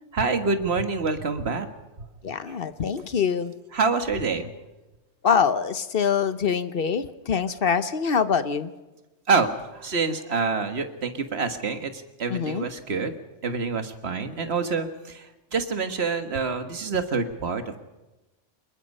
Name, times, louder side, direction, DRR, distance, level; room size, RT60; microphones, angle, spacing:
voice 1, 0.1-1.7 2.0-2.1 3.7-4.5 9.3-13.2 13.4-17.8, right 4 dB, 55° right, 8 dB, 1.8 m, -26 dB
voice 2, 2.2-3.5 5.2-8.7 12.3-12.7, left 6 dB, 50° left, 13 dB, 1.0 m, -24 dB
25.0 x 21.5 x 5.5 m, 1.1 s
omnidirectional pair, 1.3 m